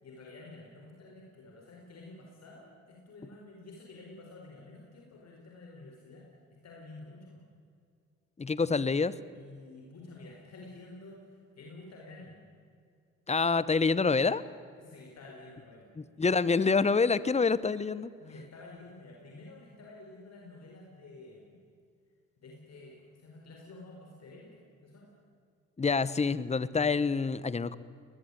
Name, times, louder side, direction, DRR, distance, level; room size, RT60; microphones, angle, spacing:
voice 1, 0.0-7.4 9.3-12.4 14.8-15.9 18.2-21.6 22.4-25.1, left 2 dB, 60° left, -1 dB, 4.7 m, -50 dB
voice 2, 8.4-9.1 13.3-14.4 16.0-18.1 25.8-27.8, left 4 dB, 20° left, 17 dB, 1.0 m, -27 dB
21.0 x 19.5 x 10.0 m, 2.3 s
cardioid pair, 90°, 30 cm